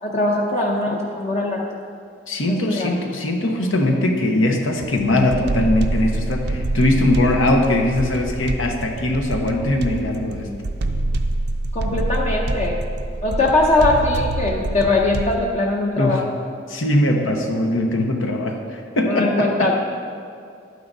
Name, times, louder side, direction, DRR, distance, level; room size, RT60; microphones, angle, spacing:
voice 1, 0.0-1.7 2.5-2.9 11.7-12.8 13.2-16.4 19.1-19.7, left 2 dB, 35° left, -2 dB, 0.7 m, -21 dB
voice 2, 2.3-10.5 16.0-16.2 16.7-19.7, left 1 dB, 85° left, 2 dB, 1.0 m, -20 dB
sound 1, 4.8-15.5, right 2 dB, 60° right, 0.5 m, -26 dB
12.0 x 9.4 x 2.7 m, 2.4 s
head